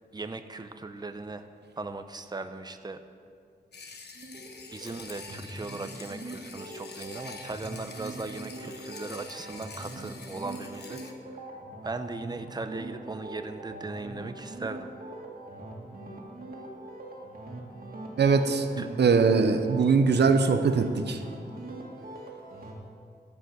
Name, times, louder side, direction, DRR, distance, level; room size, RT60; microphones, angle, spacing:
voice 1, 0.1-1.4 1.8-3.0 4.7-11.0 11.8-14.9 18.8-18.9, right 3 dB, 25° right, 9 dB, 0.7 m, -38 dB
sound 1, 3.7-11.1, left 4 dB, 75° left, 1.1 m, -46 dB
sound 2, 4.2-22.7, right 2 dB, 60° right, 2.1 m, -42 dB
voice 2, 18.2-21.2, right 5 dB, 85° right, 8 dB, 0.7 m, -22 dB
14.5 x 5.5 x 7.8 m, 2.2 s
wide cardioid pair, 80°, 17 cm